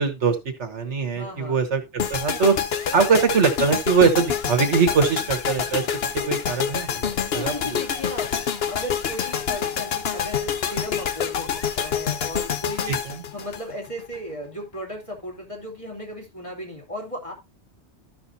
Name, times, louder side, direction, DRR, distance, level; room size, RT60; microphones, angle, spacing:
voice 1, 0.0-2.5 2.9-5.9 6.1-7.5 12.9-13.2, right 5 dB, 80° right, 7 dB, 1.7 m, -22 dB
voice 2, 1.1-1.6 7.2-8.3 8.6-11.5 11.8-13.0 13.3-17.3, equal, 30° left, -1 dB, 3.0 m, -36 dB
sound 1, 2.0-14.2, left 8 dB, 65° left, 1.0 m, -27 dB
13.5 x 6.1 x 2.7 m, 0.22 s
omnidirectional pair, 1.2 m